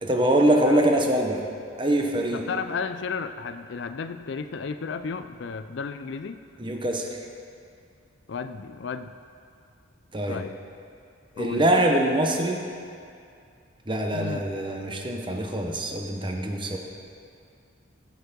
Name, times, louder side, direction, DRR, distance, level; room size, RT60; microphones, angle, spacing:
voice 1, 0.0-1.4 1.8-2.4 6.6-7.2 10.1-10.4 11.4-12.6 13.9-16.8, right 1 dB, 25° right, 2 dB, 0.9 m, -23 dB
voice 2, 2.3-6.4 8.3-9.1 10.3-10.5 11.4-11.7 14.1-14.4, left 5 dB, 55° left, 10 dB, 0.4 m, -33 dB
16.0 x 6.4 x 5.2 m, 2.4 s
head